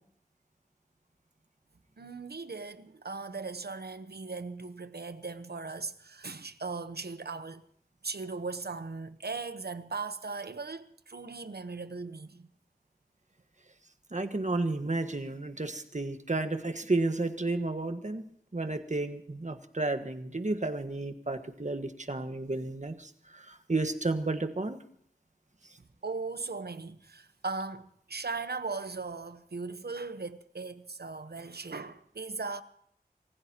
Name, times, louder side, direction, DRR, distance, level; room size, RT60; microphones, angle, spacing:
voice 1, 2.0-7.6 8.0-12.5 26.0-32.6, right 4 dB, 80° right, 1.0 m, -38 dB
voice 2, 14.1-18.2 18.5-24.8, right 2 dB, 45° right, 1.5 m, -32 dB
28.0 x 16.0 x 2.9 m
wide cardioid pair, 40°, 16 cm